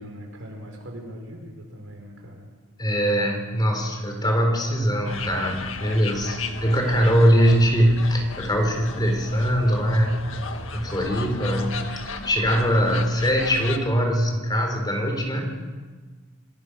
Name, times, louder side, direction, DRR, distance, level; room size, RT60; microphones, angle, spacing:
voice 1, 0.0-2.5, equal, 75° right, 2 dB, 5.7 m, -40 dB
voice 2, 2.8-10.4 10.7-15.6, equal, 20° left, 3 dB, 4.2 m, -22 dB
sound 1, 5.1-13.8, left 4 dB, 85° left, 1.8 m, -35 dB
28.5 x 19.0 x 6.5 m, 1.4 s
head